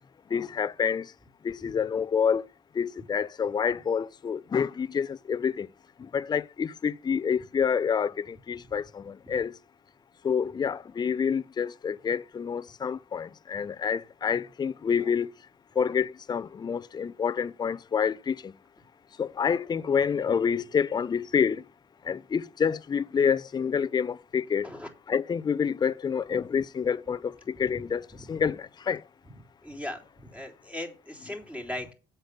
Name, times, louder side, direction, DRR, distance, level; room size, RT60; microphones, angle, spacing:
voice 1, 0.3-1.1 1.4-2.5 2.8-5.7 6.1-9.5 10.2-15.3 15.8-18.5 19.2-21.6 22.0-24.7 25.1-28.0 28.3-29.0, left 7 dB, 25° left, 0.5 m, -28 dB
voice 2, 29.6-31.9, left 1 dB, 10° right, 3.4 m, -38 dB
7.9 x 6.7 x 6.8 m
cardioid pair, 110°, 17 cm